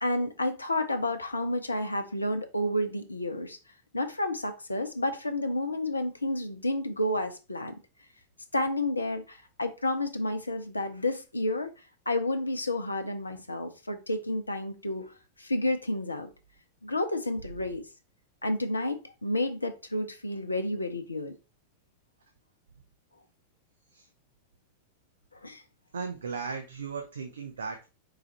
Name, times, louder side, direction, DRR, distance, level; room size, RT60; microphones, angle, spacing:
voice 1, 0.0-3.6 3.9-7.7 8.5-11.7 12.1-16.3 16.8-17.8 18.4-21.3 25.3-25.6, left 1 dB, 80° left, 0.6 m, -30 dB
voice 2, 25.9-27.9, right 5 dB, 70° right, 0.7 m, -36 dB
4.8 x 2.4 x 4.1 m
figure-of-eight pair, 90°, 0 cm